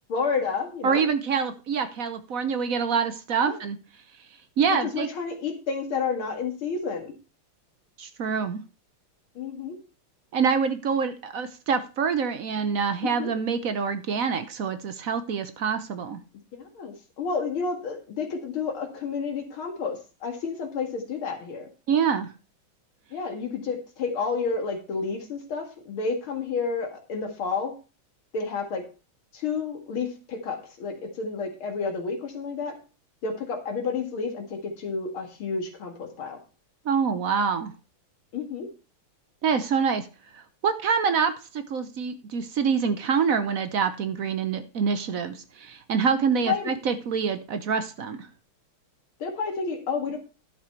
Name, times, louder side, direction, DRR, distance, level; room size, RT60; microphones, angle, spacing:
voice 1, 0.1-1.0 3.4-3.5 4.8-7.1 9.4-9.8 13.2-13.3 16.6-21.7 23.1-27.7 28.3-28.8 29.3-32.8 33.2-36.4 38.3-38.7 46.5-46.7 49.2-50.2, left 5 dB, 75° left, 4 dB, 2.6 m, -30 dB
voice 2, 0.8-3.8 4.6-5.1 8.0-8.6 10.3-16.2 21.9-22.3 36.8-37.7 39.4-40.1 40.3-48.3, right 6 dB, 60° right, 10 dB, 0.9 m, -26 dB
11.5 x 6.7 x 4.4 m, 0.33 s
omnidirectional pair, 2.3 m